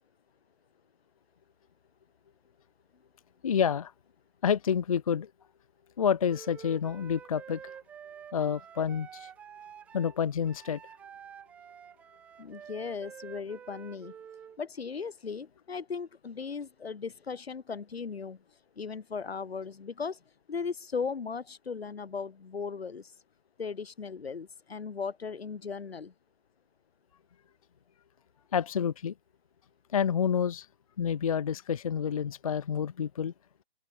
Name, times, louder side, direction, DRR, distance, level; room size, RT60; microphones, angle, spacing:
voice 1, 3.4-3.9 4.4-5.3 6.0-7.8 8.3-9.3 9.9-10.8 28.5-29.1 29.9-30.7 31.0-33.3, left 7 dB, 35° left, 0.6 m, -28 dB
Wind instrument woodwind instrument, 6.3-14.6, right 8 dB, 5° right, 0.9 m, -49 dB
voice 2, 12.4-14.1 14.6-18.4 18.7-20.2 20.5-23.1 23.6-26.1, left 5 dB, 85° left, 4.8 m, -37 dB
open air
hypercardioid pair, 170°, 30 cm